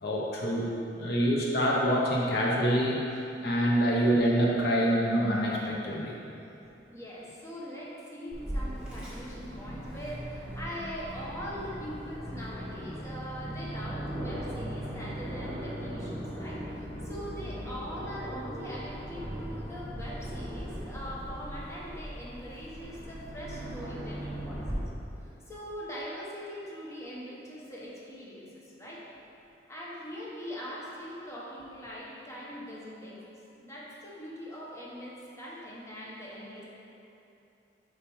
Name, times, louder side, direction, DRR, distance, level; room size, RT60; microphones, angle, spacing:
voice 1, 0.0-6.1, equal, 65° left, -3 dB, 0.7 m, -26 dB
voice 2, 6.9-24.9 25.5-29.0 29.7-33.2 33.6-36.7, equal, 15° left, -6 dB, 1.0 m, -42 dB
Aircraft, 8.3-24.7, equal, 5° right, 1.3 m, -39 dB
6.8 x 5.1 x 3.0 m, 2.8 s
head